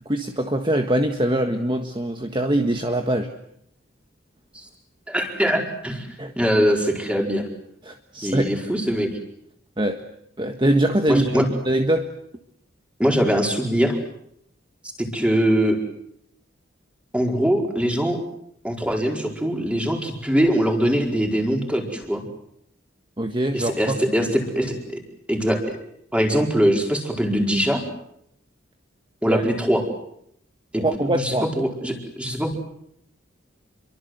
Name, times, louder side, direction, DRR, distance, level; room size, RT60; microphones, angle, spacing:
voice 1, 0.0-3.3 6.2-6.3 7.8-8.6 9.8-10.0 10.4-12.1 23.2-24.3 29.3-29.4 30.8-31.5, right 1 dB, 25° right, 5 dB, 1.6 m, -23 dB
voice 2, 5.1-7.4 8.2-9.1 11.1-11.4 13.0-14.0 15.0-15.8 17.1-18.2 18.6-22.2 23.5-24.7 25.3-25.6 26.1-27.8 29.2-29.8 30.7-32.6, equal, 5° right, 2 dB, 4.8 m, -22 dB
28.5 x 24.0 x 8.0 m, 0.74 s
head